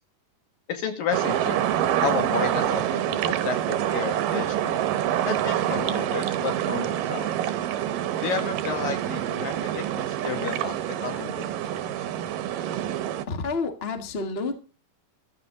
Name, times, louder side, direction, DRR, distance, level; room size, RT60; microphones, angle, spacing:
voice 1, 0.7-1.6 2.0-4.8 5.2-7.4 8.2-11.4 11.8-11.9, left 6 dB, 70° left, 6 dB, 3.9 m, -32 dB
sound 1, 1.1-13.2, right 11 dB, 75° right, 2.4 m, -26 dB
voice 2, 13.3-14.6, left 4 dB, 40° left, 6 dB, 0.9 m, -29 dB
14.5 x 13.0 x 3.9 m, 0.36 s
omnidirectional pair, 4.1 m